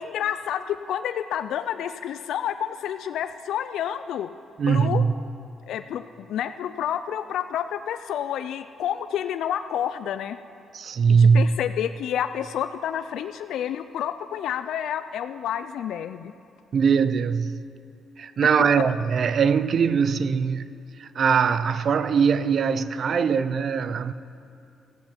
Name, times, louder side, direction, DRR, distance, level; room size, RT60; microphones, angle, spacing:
voice 1, 0.0-4.3 4.7-5.0 5.7-10.4 11.1-16.3 18.6-18.8, left 10 dB, 75° left, 0.3 m, -29 dB
voice 2, 4.6-5.1 10.7-11.6 16.7-17.6 18.2-20.7 21.0-24.1, right 6 dB, 55° right, 0.5 m, -21 dB
14.5 x 8.7 x 5.8 m
cardioid pair, 90°, 0 cm